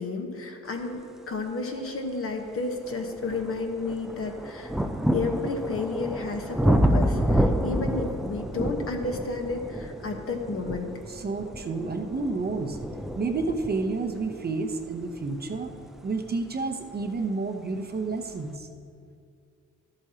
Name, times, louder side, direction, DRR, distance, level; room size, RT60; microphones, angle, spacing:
voice 1, 0.0-4.7 5.1-10.9, left 3 dB, 45° left, 4 dB, 1.1 m, -32 dB
sound 1, 1.8-1.9 2.5-17.2 18.1-18.2, equal, ahead, 0.4 m, -29 dB
voice 2, 11.1-12.8 13.2-15.7 16.0-18.7, right 3 dB, 30° right, 5 dB, 0.7 m, -30 dB
12.5 x 8.1 x 2.9 m, 2.3 s
cardioid pair, 90°, 30 cm